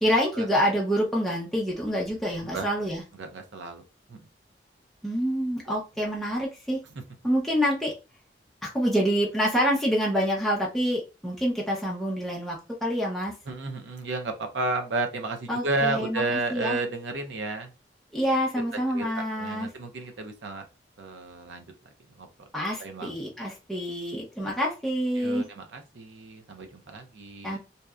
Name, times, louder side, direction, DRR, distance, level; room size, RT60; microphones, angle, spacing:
voice 1, 0.0-3.0 5.0-6.8 7.2-7.9 8.6-13.3 15.5-16.8 18.1-19.7 22.5-25.5 27.4-27.6, equal, ahead, -4 dB, 0.5 m, -27 dB
voice 2, 3.2-3.8 4.1-4.2 13.5-17.7 18.9-19.1 19.4-20.6 21.0-21.6 22.2-22.3 22.8-23.1 25.2-27.6, right 2 dB, 85° right, 5 dB, 0.6 m, -32 dB
2.7 x 2.2 x 2.3 m, 0.29 s
head